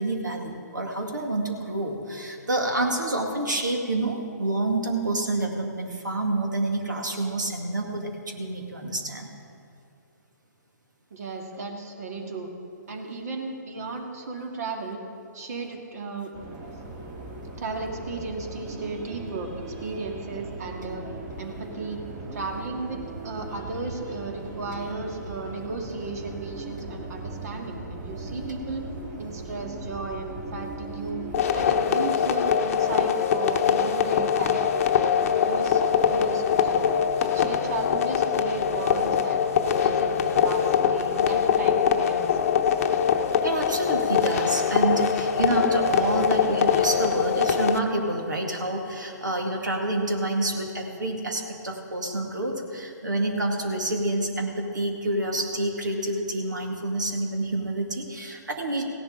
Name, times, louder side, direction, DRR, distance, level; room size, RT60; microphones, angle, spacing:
voice 1, 0.0-9.3 43.4-58.8, right 2 dB, 80° right, 2 dB, 2.1 m, -28 dB
voice 2, 11.1-12.5 12.9-15.0 15.3-16.3 17.6-19.5 19.8-21.0 21.4-22.0 22.3-23.0 23.2-28.8 29.2-31.2 31.5-36.9 37.2-39.5 39.8-42.5, right 3 dB, 60° right, 3 dB, 2.0 m, -35 dB
sound 1, 16.3-31.7, right 2 dB, 30° right, 2.2 m, -38 dB
sound 2, 31.3-47.8, left 7 dB, 50° left, 0.8 m, -23 dB
17.0 x 11.0 x 3.8 m, 2.4 s
figure-of-eight pair, 125°, 10 cm